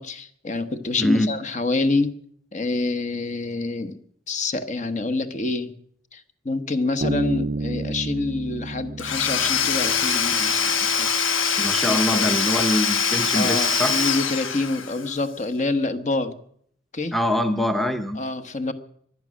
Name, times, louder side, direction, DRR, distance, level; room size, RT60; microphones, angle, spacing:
voice 1, 0.0-2.2 2.5-4.0 4.3-5.7 6.1-11.1 11.8-12.4 13.3-16.4 16.9-17.1 18.1-18.7, left 3 dB, 35° left, 9 dB, 1.0 m, -27 dB
voice 2, 1.0-1.3 11.6-13.9 17.1-18.2, left 1 dB, ahead, 6 dB, 0.8 m, -23 dB
Bass guitar, 7.0-10.5, right 3 dB, 45° right, 0.6 m, -30 dB
Domestic sounds home sounds / Tools, 9.0-15.1, left 6 dB, 75° left, 1.2 m, -23 dB
23.5 x 9.7 x 6.3 m, 0.64 s
head